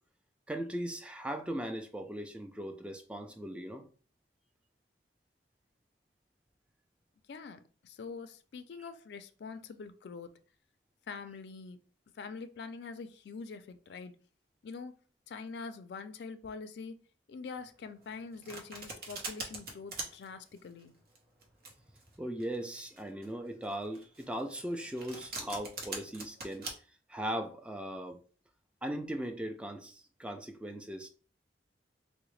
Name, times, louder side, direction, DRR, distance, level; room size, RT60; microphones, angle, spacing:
voice 1, 0.5-3.9 22.2-26.7 27.1-28.2 28.8-31.1, right 1 dB, 5° right, 0.3 m, -38 dB
voice 2, 7.3-10.3 11.1-11.8 12.2-14.2 14.6-14.9 15.3-17.0 17.3-20.9, left 4 dB, 70° left, 0.4 m, -44 dB
Domestic sounds home sounds, 18.0-26.7, right 3 dB, 60° right, 0.8 m, -43 dB
3.7 x 2.1 x 3.1 m
head